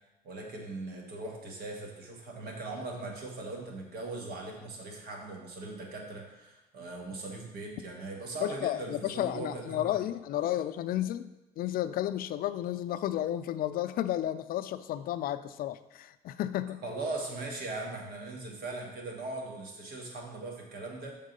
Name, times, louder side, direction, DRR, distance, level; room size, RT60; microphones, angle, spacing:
voice 1, 0.2-9.9 16.8-21.1, right 2 dB, 70° right, 1 dB, 1.6 m, -39 dB
voice 2, 8.4-11.3 11.6-16.8, left 12 dB, 60° left, 11 dB, 0.4 m, -32 dB
7.2 x 3.7 x 5.3 m, 0.97 s
cardioid pair, 110°, 17 cm